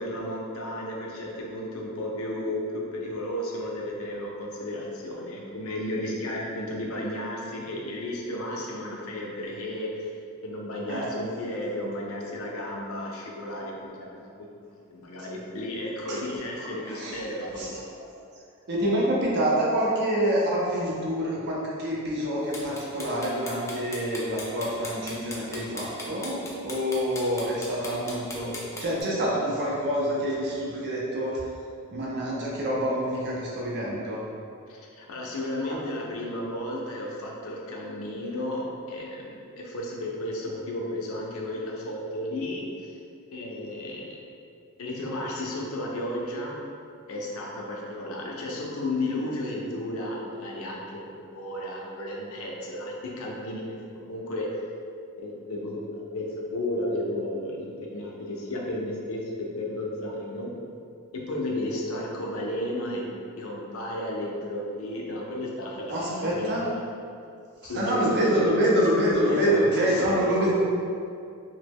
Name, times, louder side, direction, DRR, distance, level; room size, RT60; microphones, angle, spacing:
voice 1, 0.0-10.1 10.4-13.7 14.0-14.3 14.9-17.8 34.7-43.0 43.3-44.2 44.8-46.6 47.1-53.6 53.9-54.6 55.2-60.5 61.1-63.0 63.4-66.5 67.6-68.6 69.2-70.5, left 1 dB, 65° left, -2 dB, 0.5 m, -33 dB
voice 2, 16.9-17.2 17.6-17.8 18.7-31.4 31.9-34.2 65.9-66.6 67.6-70.5, equal, 50° right, -5 dB, 0.6 m, -26 dB
sound 1, 22.5-29.0, left 2 dB, 15° left, 0.3 m, -38 dB
3.0 x 2.1 x 3.4 m, 2.4 s
head